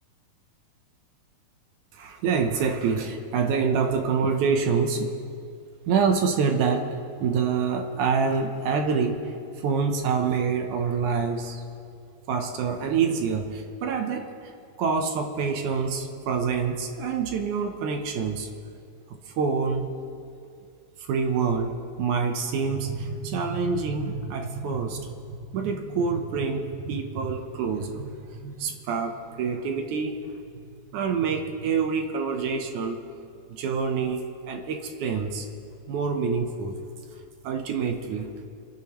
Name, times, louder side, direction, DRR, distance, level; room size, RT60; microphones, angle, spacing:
voice 1, 1.9-5.2 5.9-6.9 7.2-9.2 9.6-11.6 12.3-14.3 14.8-18.5 19.3-19.9 21.1-25.1 25.5-30.2 30.9-33.0 33.5-35.5 35.9-36.8 37.4-38.3, right 5 dB, 70° right, 4 dB, 2.0 m, -26 dB
27.0 x 11.5 x 3.1 m, 2.4 s
omnidirectional pair, 4.2 m